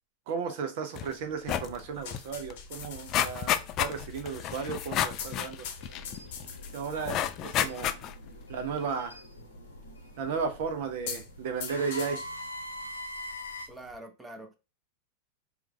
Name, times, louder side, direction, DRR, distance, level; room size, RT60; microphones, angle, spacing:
voice 1, 0.3-5.7 6.7-7.9 8.5-9.2 10.2-12.2, right 5 dB, 50° right, 0.5 m, -34 dB
sound 1, 1.0-1.1 1.4-1.8 2.1-2.2 2.5-6.5 7.1-8.3 8.8-8.9, left 11 dB, 35° left, 0.3 m, -31 dB
sound 2, 1.5-14.0, left 6 dB, 50° left, 0.8 m, -46 dB
sound 3, 5.8-13.7, left 1 dB, 90° left, 0.9 m, -44 dB
voice 2, 13.7-14.6, right 1 dB, 10° right, 0.7 m, -45 dB
4.5 x 2.3 x 3.1 m
figure-of-eight pair, 90°, 0 cm